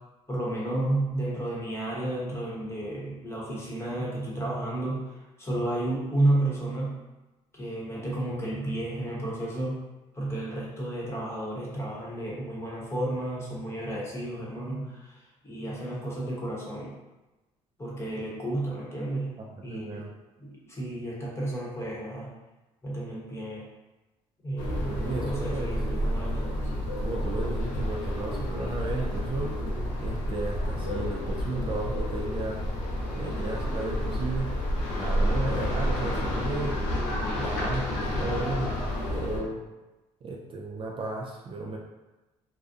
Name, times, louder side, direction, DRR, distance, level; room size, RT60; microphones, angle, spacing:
voice 1, 0.3-5.0 5.4-7.0 7.5-9.8 10.1-16.9 17.8-19.3 19.6-20.0 20.4-22.3 22.8-23.7 24.4-26.7, right 1 dB, 20° left, -5 dB, 0.9 m, -32 dB
voice 2, 19.7-20.1 24.9-25.7 27.0-29.5 30.0-32.6 33.1-34.5 35.0-36.8 37.4-38.7 39.1-39.6 40.2-41.8, right 2 dB, 40° right, 0 dB, 0.3 m, -34 dB
sound 1, 24.6-39.4, equal, 85° left, 0.5 m, -30 dB
2.5 x 2.0 x 2.5 m, 1.1 s
supercardioid pair, 80°, 13 cm